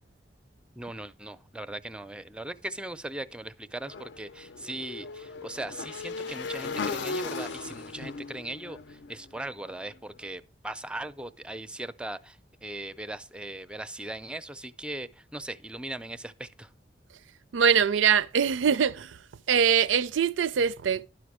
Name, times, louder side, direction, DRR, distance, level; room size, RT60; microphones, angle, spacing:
voice 1, 0.8-16.7, right 1 dB, 5° right, 0.4 m, -39 dB
Motorcycle / Engine, 3.8-10.0, left 4 dB, 65° left, 0.5 m, -37 dB
voice 2, 17.5-19.2 19.5-21.0, right 7 dB, 85° right, 0.4 m, -23 dB
11.5 x 5.1 x 4.8 m
head